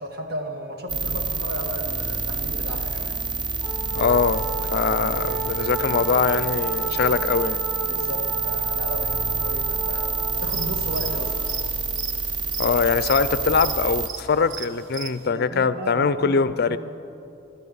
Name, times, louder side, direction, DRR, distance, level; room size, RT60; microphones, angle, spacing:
voice 1, 0.0-3.2 7.8-11.5 15.2-16.8, equal, 55° right, 2 dB, 1.9 m, -35 dB
sound 1, 0.9-14.1, right 4 dB, 25° right, 0.5 m, -27 dB
Wind instrument woodwind instrument, 3.6-11.6, right 3 dB, ahead, 4.3 m, -34 dB
voice 2, 3.9-7.6 12.6-16.8, left 5 dB, 55° left, 14 dB, 0.5 m, -22 dB
sound 2, 10.3-15.3, right 7 dB, 85° right, 0.7 m, -38 dB
25.0 x 13.0 x 4.0 m, 2.8 s
head